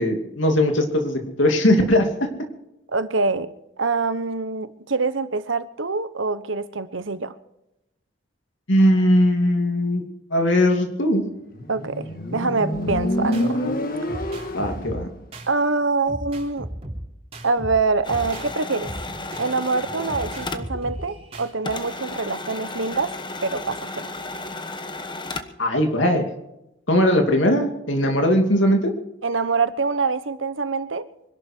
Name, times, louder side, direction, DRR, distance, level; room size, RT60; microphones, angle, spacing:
voice 1, 0.0-2.1 8.7-10.0 10.3-11.2 14.5-15.1 25.6-26.3 26.9-28.9, left 1 dB, 75° left, 2.7 m, -19 dB
voice 2, 2.9-7.3 11.7-13.6 15.5-16.7 17.4-18.9 19.4-23.1 23.4-24.1 29.2-31.0, right 4 dB, 80° right, 1.1 m, -25 dB
Motorcycle, 11.5-15.0, left 1 dB, 45° left, 1.8 m, -27 dB
sound 1, 12.7-13.5 14.1-15.5 16.1-18.5 18.8-21.5, right 1 dB, 30° right, 3.6 m, -35 dB
sound 2, 18.0-21.4 21.6-25.6, left 2 dB, 25° left, 1.2 m, -34 dB
25.0 x 12.0 x 4.6 m
head